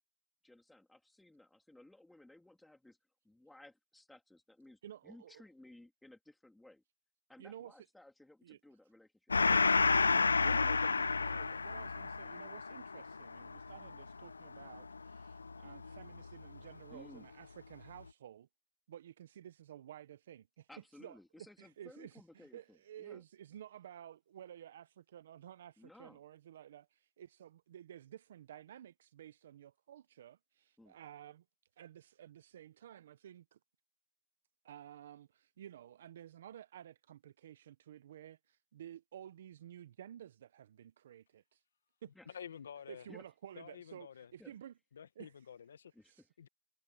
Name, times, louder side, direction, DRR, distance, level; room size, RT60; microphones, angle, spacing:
voice 1, 0.4-3.0 3.2-6.8 7.3-9.8 16.9-17.3 20.7-23.2 25.8-26.2 30.8-31.0 42.1-42.3 43.1-43.2 44.4-44.5 45.9-46.3, left 1 dB, ahead, 2.9 m, -58 dB
voice 2, 4.8-5.4 7.4-7.9 8.4-8.6 10.1-18.5 18.9-20.7 21.0-31.4 31.8-33.6 34.6-41.6 42.0-42.4 42.9-44.7 45.2-45.5 46.0-46.2, right 10 dB, 30° right, 0.6 m, -53 dB
Gong, 9.3-16.3, left 4 dB, 90° left, 0.3 m, -31 dB
voice 3, 42.3-43.1 43.6-44.3 44.9-45.9 46.4-46.5, left 8 dB, 40° left, 0.8 m, -50 dB
hypercardioid pair, 175°, 0 cm